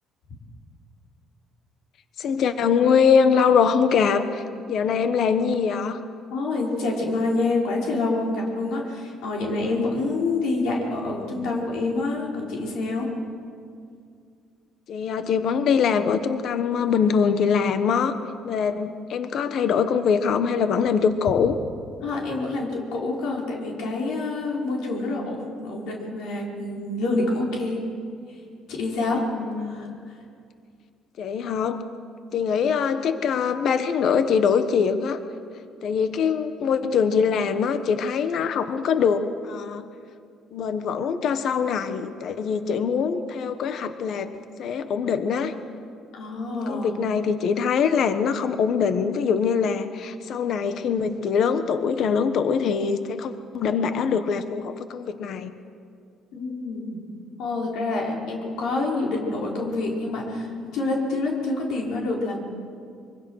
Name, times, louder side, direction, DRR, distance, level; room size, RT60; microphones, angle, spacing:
voice 1, 2.2-4.4 4.7-6.0 14.9-18.2 18.4-21.6 29.3-30.0 31.2-31.8 32.3-35.2 35.8-39.8 40.5-44.3 44.6-45.5 46.7-55.5, left 6 dB, 55° left, 10 dB, 1.2 m, -23 dB
voice 2, 6.3-13.1 22.0-27.8 28.3-28.4 28.7-29.2 29.6-29.9 46.1-46.9 56.3-57.0 57.4-62.4, left 2 dB, 75° left, -2 dB, 4.8 m, -27 dB
25.5 x 24.0 x 6.5 m, 2.3 s
cardioid pair, 140°, 0 cm